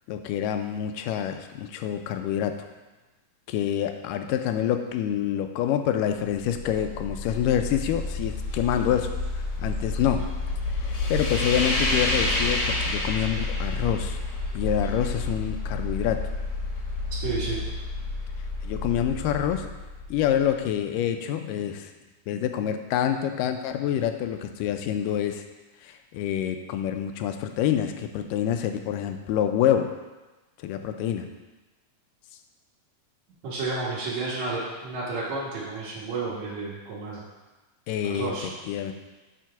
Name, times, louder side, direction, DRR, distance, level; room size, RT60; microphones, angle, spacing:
voice 1, 0.1-2.7 3.5-10.3 11.1-14.2 14.5-16.3 18.6-19.7 20.1-21.9 22.3-25.4 25.8-29.9 30.6-31.3 37.9-38.3 38.7-38.9, left 10 dB, 80° left, 7 dB, 2.1 m, -27 dB
sound 1, 6.4-20.4, left 2 dB, 55° left, 1.6 m, -29 dB
voice 2, 17.2-17.6 33.4-37.2 38.0-38.5, right 3 dB, 65° right, -9 dB, 2.4 m, -31 dB
7.6 x 4.4 x 5.7 m, 1.2 s
omnidirectional pair, 4.0 m